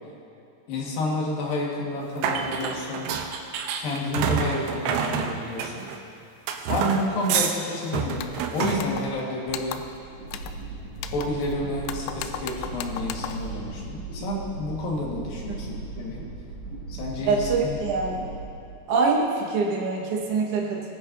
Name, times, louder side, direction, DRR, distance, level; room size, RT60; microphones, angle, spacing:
voice 1, 0.7-3.1 3.8-5.9 6.7-8.3 8.5-9.8 11.1-16.2 16.9-17.8, left 1 dB, 60° left, -3 dB, 3.2 m, -30 dB
sound 1, 2.2-6.0 6.5-7.6 7.9-8.8, right 7 dB, 85° right, 2.9 m, -28 dB
sound 2, 8.2-8.4 8.8-9.2 9.5-10.0 10.3-10.6 11.0-11.5 11.8-13.5, left 9 dB, 85° left, 2.3 m, -36 dB
sound 3, 9.8-19.1, right 3 dB, 45° right, 1.9 m, -37 dB
voice 2, 17.2-18.3 18.9-20.9, right 4 dB, 70° right, -2 dB, 1.4 m, -24 dB
19.0 x 11.0 x 2.7 m, 2.7 s
omnidirectional pair, 5.1 m